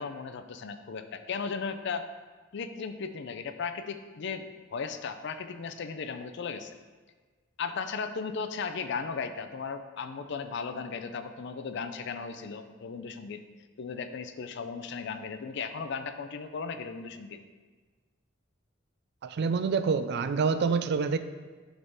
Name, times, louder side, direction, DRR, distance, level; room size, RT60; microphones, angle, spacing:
voice 1, 0.0-2.1 2.5-6.8 7.6-13.4 13.8-17.4, left 5 dB, 60° left, 9 dB, 0.4 m, -36 dB
voice 2, 19.2-21.2, right 5 dB, 55° right, 11 dB, 0.4 m, -27 dB
8.7 x 3.6 x 4.0 m, 1.4 s
head